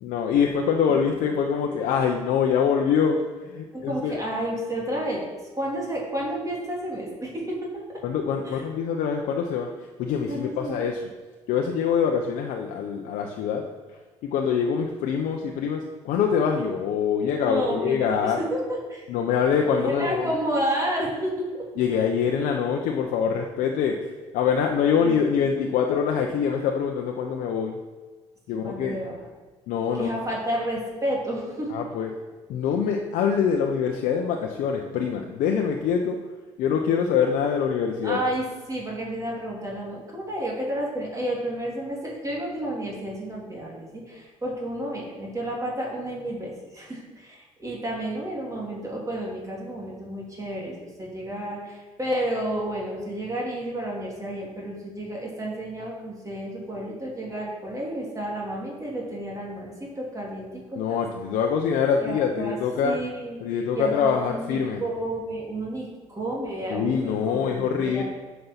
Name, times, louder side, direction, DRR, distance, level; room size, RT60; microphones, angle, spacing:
voice 1, 0.0-3.2 3.5-4.1 8.0-9.7 10.0-11.0 11.5-13.6 14.3-18.4 19.1-20.3 21.8-27.8 28.5-29.0 29.7-30.1 31.7-32.1 32.5-36.2 36.6-38.2 60.8-63.0 63.4-64.8 66.7-68.0, left 7 dB, 80° left, 2 dB, 0.8 m, -24 dB
voice 2, 0.9-1.5 3.7-5.3 5.5-7.6 8.4-8.6 10.3-10.9 17.4-19.1 19.7-21.6 24.9-25.4 28.6-29.2 30.0-31.7 38.0-60.8 62.0-68.0, right 1 dB, 25° right, -3 dB, 2.8 m, -31 dB
7.8 x 5.5 x 5.9 m, 1.3 s
supercardioid pair, 70°, 14 cm